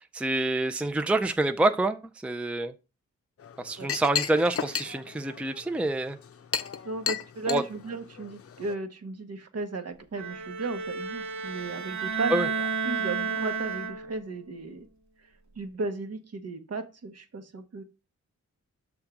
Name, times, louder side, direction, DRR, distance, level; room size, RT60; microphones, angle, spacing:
voice 1, 0.1-2.7 3.6-6.2 7.5-7.6 12.3-12.5, right 2 dB, 5° right, 0.5 m, -27 dB
Chink clink, 3.4-8.7, left 7 dB, 50° left, 0.6 m, -35 dB
voice 2, 6.8-14.9 15.6-17.8, right 3 dB, 60° right, 1.1 m, -35 dB
Bowed string instrument, 10.2-14.3, right 5 dB, 75° right, 1.5 m, -31 dB
6.4 x 3.6 x 5.9 m
wide cardioid pair, 85°, 29 cm